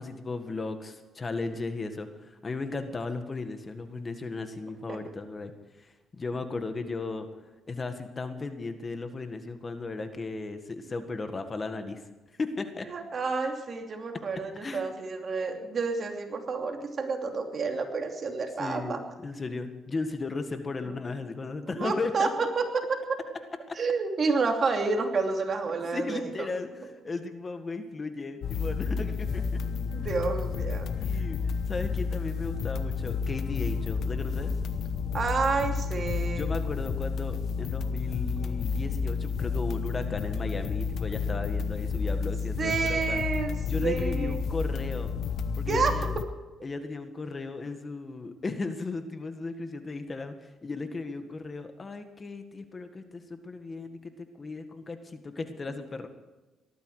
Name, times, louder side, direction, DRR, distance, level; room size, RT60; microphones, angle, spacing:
voice 1, 0.0-5.5 5.8-7.3 7.6-12.0 12.4-12.9 14.6-14.9 18.6-22.3 23.7-23.8 25.9-29.6 30.9-34.5 36.4-43.2 43.7-45.1 45.5-46.1 46.6-56.1, left 3 dB, 30° left, 8 dB, 1.7 m, -36 dB
voice 2, 12.9-19.0 20.8-21.0 21.8-22.3 22.6-22.8 23.7-26.5 29.9-30.9 35.1-36.4 42.6-43.6 43.8-44.3 45.7-46.2, right 4 dB, 45° right, 3 dB, 2.8 m, -29 dB
sound 1, 28.4-46.2, left 5 dB, 70° left, 1.0 m, -31 dB
19.0 x 13.5 x 4.9 m, 1.2 s
cardioid pair, 90°, 0 cm